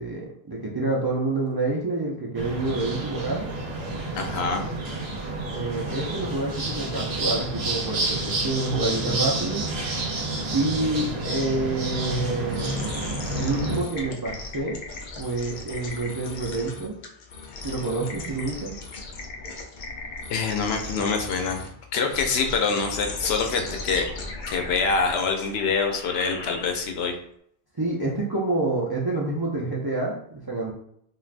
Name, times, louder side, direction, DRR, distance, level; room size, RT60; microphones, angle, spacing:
voice 1, 0.0-3.5 5.5-9.6 10.5-12.9 13.3-14.8 15.2-17.0 17.6-18.8 27.8-30.7, right 2 dB, 35° right, -4 dB, 0.4 m, -28 dB
sound 1, 2.3-13.8, right 2 dB, 75° right, 0.9 m, -29 dB
voice 2, 4.1-4.6 20.3-21.6 21.9-24.1 24.5-27.1, left 4 dB, 85° left, 4 dB, 0.8 m, -25 dB
sound 2, 12.5-27.0, left 3 dB, 60° left, 0.6 m, -37 dB
3.3 x 2.4 x 2.4 m, 0.69 s
omnidirectional pair, 1.0 m